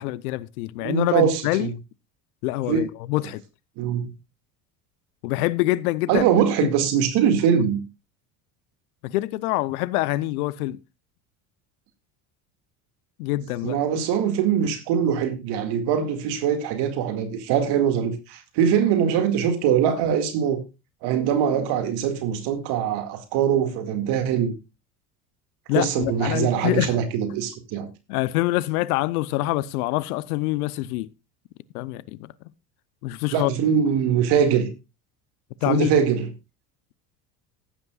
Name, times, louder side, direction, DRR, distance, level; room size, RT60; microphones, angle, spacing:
voice 1, 0.0-1.7 2.4-3.4 5.2-6.3 6.6-6.7 9.0-10.8 13.2-13.8 25.7-26.9 28.1-31.1 31.7-32.3 33.0-33.5 35.6-35.9, left 17 dB, 80° left, 0.8 m, -25 dB
voice 2, 0.8-1.7 2.7-2.9 3.8-4.1 6.1-7.8 13.6-20.6 21.0-24.6 25.7-27.9 33.3-34.7 35.7-36.3, right 8 dB, 65° right, 2.2 m, -22 dB
15.0 x 11.0 x 2.4 m
hypercardioid pair, 85°, 43 cm